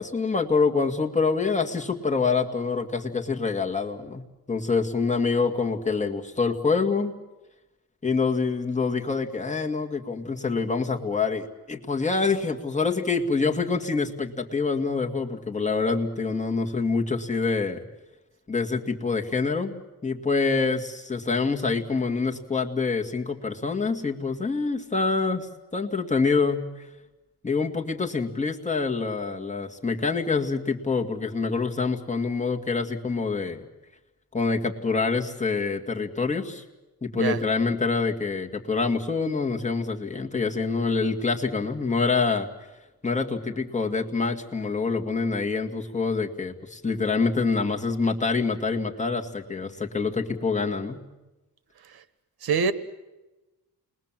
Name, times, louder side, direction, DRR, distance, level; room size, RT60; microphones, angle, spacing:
voice 1, 0.0-7.1 8.0-17.8 18.5-26.7 27.4-33.6 34.3-36.6 37.0-42.5 43.0-51.0, left 4 dB, 20° left, 1 dB, 2.2 m, -26 dB
voice 2, 52.4-52.7, right 6 dB, 70° right, 14 dB, 1.4 m, -24 dB
29.5 x 21.5 x 7.6 m, 1.1 s
cardioid pair, 110°, 39 cm